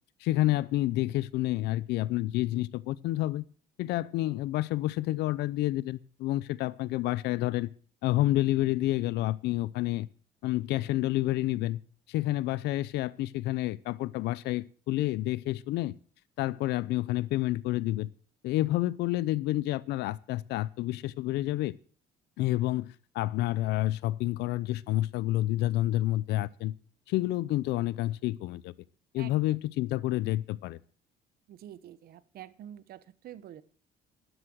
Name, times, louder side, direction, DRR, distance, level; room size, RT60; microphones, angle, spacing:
voice 1, 0.2-3.4 3.8-7.7 8.0-10.1 10.4-11.8 12.1-15.9 16.4-18.1 18.4-21.7 22.4-26.7 27.1-28.7 29.1-30.8, left 16 dB, 85° left, 0.7 m, -29 dB
voice 2, 31.5-33.6, right 11 dB, 65° right, 1.0 m, -47 dB
12.5 x 11.0 x 6.4 m
cardioid pair, 110°, 17 cm